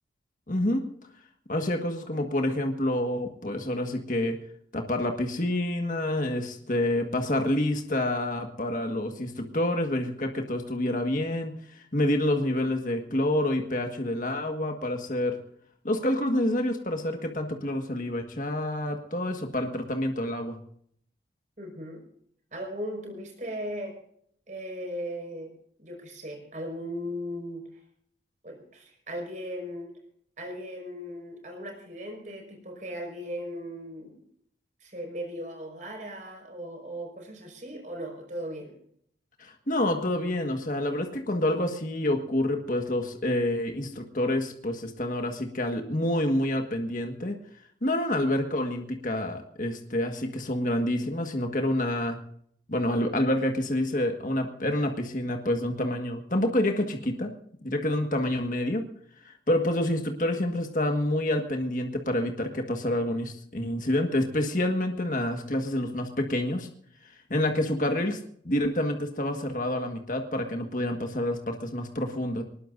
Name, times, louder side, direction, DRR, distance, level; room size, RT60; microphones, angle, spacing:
voice 1, 0.5-0.9 1.5-4.4 4.7-15.4 15.8-20.6 39.4-47.3 47.8-52.2 52.7-57.3 57.6-58.8 59.2-66.7 67.3-68.2 68.4-72.4, left 1 dB, 45° left, 4 dB, 1.6 m, -28 dB
voice 2, 21.6-22.0 22.5-24.0 24.5-25.5 25.8-27.8 28.4-29.9 30.4-34.2 34.8-38.8, equal, 45° right, 1 dB, 5.3 m, -37 dB
23.0 x 20.0 x 2.6 m, 0.66 s
head